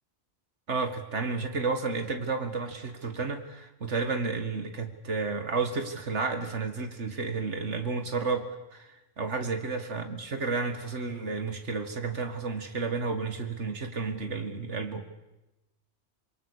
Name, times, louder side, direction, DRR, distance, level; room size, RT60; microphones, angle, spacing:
voice 1, 0.7-15.1, right 4 dB, 75° right, 6 dB, 2.3 m, -32 dB
27.0 x 22.5 x 6.7 m, 0.97 s
omnidirectional pair, 1.2 m